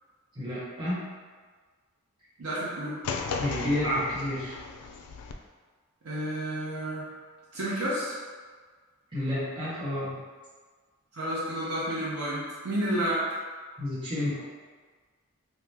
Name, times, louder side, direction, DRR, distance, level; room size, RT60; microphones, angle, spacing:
voice 1, 0.3-1.1 3.4-4.6 9.1-10.2 13.8-14.4, left 1 dB, 20° right, -11 dB, 1.1 m, -30 dB
voice 2, 2.4-3.0 6.0-7.1 7.5-8.2 11.1-13.3, right 1 dB, 85° right, -8 dB, 0.7 m, -30 dB
sound 1, 3.0-5.3, left 5 dB, 85° left, 0.3 m, -35 dB
2.8 x 2.1 x 3.3 m, 1.5 s
head